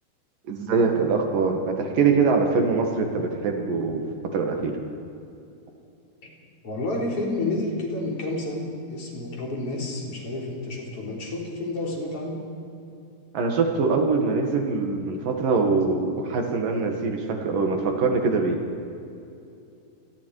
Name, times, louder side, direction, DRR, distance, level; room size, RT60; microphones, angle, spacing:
voice 1, 0.5-4.0 4.3-4.7 13.3-18.6, right 4 dB, 55° right, 3 dB, 3.2 m, -23 dB
voice 2, 6.6-12.4, left 2 dB, 35° left, -1 dB, 4.3 m, -30 dB
28.0 x 21.5 x 4.9 m, 2.6 s
omnidirectional pair, 5.1 m